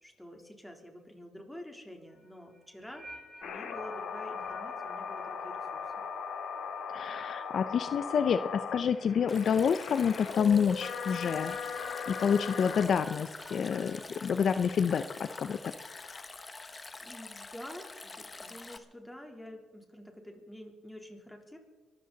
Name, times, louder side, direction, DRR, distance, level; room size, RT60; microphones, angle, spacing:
voice 1, 0.0-3.1 3.4-5.8 16.3-16.6 17.0-21.6, left 1 dB, 5° left, 3 dB, 3.4 m, -48 dB
sound 1, 2.1-9.2 9.4-9.9 11.1-15.7, left 1 dB, 25° right, 6.2 m, -54 dB
sound 2, 3.4-12.9, left 6 dB, 75° left, 2.3 m, -39 dB
voice 2, 6.9-11.6 12.1-16.2, left 7 dB, 55° left, 11 dB, 0.6 m, -28 dB
Stream, 9.3-18.8, left 3 dB, 25° left, 1.4 m, -46 dB
24.0 x 13.5 x 4.0 m, 1.3 s
cardioid pair, 90°, 0 cm